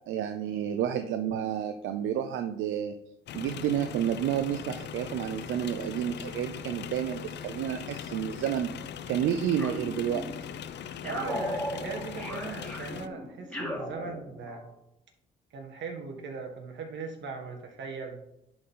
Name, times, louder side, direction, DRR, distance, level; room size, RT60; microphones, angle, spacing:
voice 1, 0.1-2.9 3.3-8.7 9.1-10.2, right 10 dB, 85° right, 8 dB, 0.5 m, -30 dB
Old Tractor Starting and Engine Noises, 3.3-13.1, left 9 dB, 60° left, 0.5 m, -40 dB
sound 1, 9.6-10.5 11.0-14.7, left 1 dB, 5° left, 2.0 m, -37 dB
voice 2, 11.0-14.7 15.5-18.2, right 4 dB, 65° right, 2 dB, 1.7 m, -39 dB
10.5 x 4.3 x 3.8 m, 0.81 s
cardioid pair, 90°, 20 cm